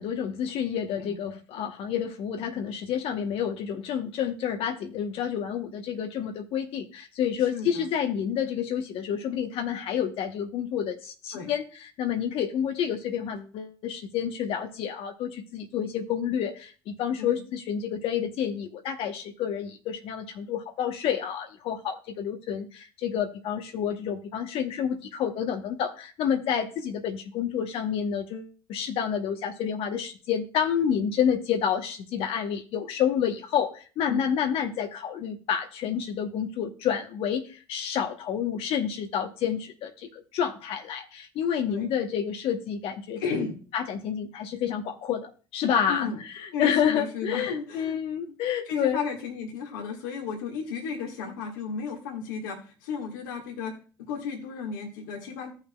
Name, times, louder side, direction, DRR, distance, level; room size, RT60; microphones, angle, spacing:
voice 1, 0.0-11.6 12.0-43.2 43.7-49.0, left 8 dB, 65° left, 5 dB, 1.0 m, -29 dB
voice 2, 7.5-7.9 11.3-11.5 17.2-17.4 34.1-34.3 41.7-41.9 43.2-43.5 45.9-46.2 46.5-48.0 48.7-55.5, left 5 dB, 80° left, 0 dB, 1.6 m, -34 dB
15.0 x 5.7 x 2.3 m, 0.37 s
hypercardioid pair, 65°, 11 cm